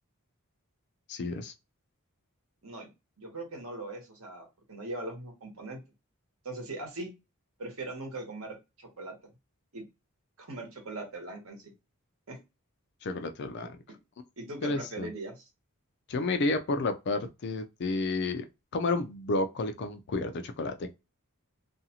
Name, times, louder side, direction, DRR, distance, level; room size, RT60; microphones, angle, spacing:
voice 1, 1.1-1.5 13.0-13.8 14.6-15.1 16.1-18.4 18.7-20.9, left 2 dB, 50° left, 0.4 m, -31 dB
voice 2, 3.2-5.8 6.4-7.1 7.6-9.2 9.7-9.8 10.4-11.7 12.3-12.4 14.4-15.4, right 2 dB, 65° right, 1.1 m, -40 dB
2.6 x 2.3 x 2.8 m
head